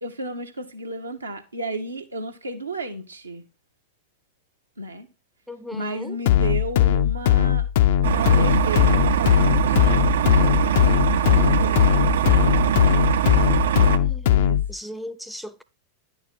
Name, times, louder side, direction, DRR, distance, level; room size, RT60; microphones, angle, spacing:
voice 1, 0.0-3.4 4.8-5.1 5.7-7.7 8.0-10.8 11.1-13.0 14.3-14.6, right 1 dB, 80° right, 0.9 m, -33 dB
voice 2, 5.5-6.2 13.9-14.3 14.7-15.6, left 1 dB, ahead, 0.5 m, -37 dB
sound 1, 6.3-14.7, left 11 dB, 55° left, 0.4 m, -19 dB
sound 2, 8.0-14.0, right 10 dB, 60° right, 0.4 m, -22 dB
10.0 x 4.6 x 4.1 m
figure-of-eight pair, 90°, 0 cm